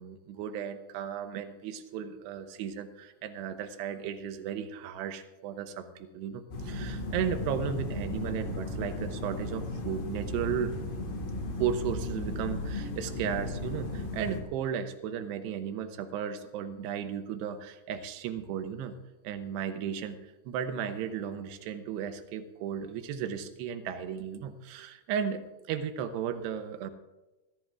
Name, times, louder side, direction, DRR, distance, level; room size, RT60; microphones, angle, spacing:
voice 1, 0.0-10.8 11.6-18.9 19.2-26.9, right 8 dB, 80° right, 9 dB, 2.7 m, -35 dB
sound 1, 6.5-14.4, left 2 dB, 60° left, 3.1 m, -35 dB
22.0 x 13.5 x 2.4 m, 1.1 s
omnidirectional pair, 5.3 m